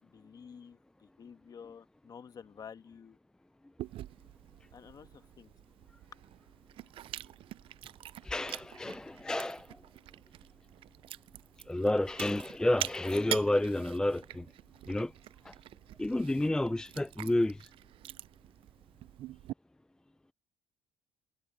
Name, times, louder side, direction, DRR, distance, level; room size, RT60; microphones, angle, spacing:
voice 1, 0.0-3.2 4.7-5.5, left 7 dB, 40° left, 1.5 m, -51 dB
Chewing mastication, 3.8-19.5, right 14 dB, 60° right, 0.5 m, -45 dB
voice 2, 8.2-9.7 11.7-14.5 14.9-15.1 15.4-15.5 16.0-17.7, left 1 dB, 5° left, 0.4 m, -30 dB
cardioid pair, 95°, 10 cm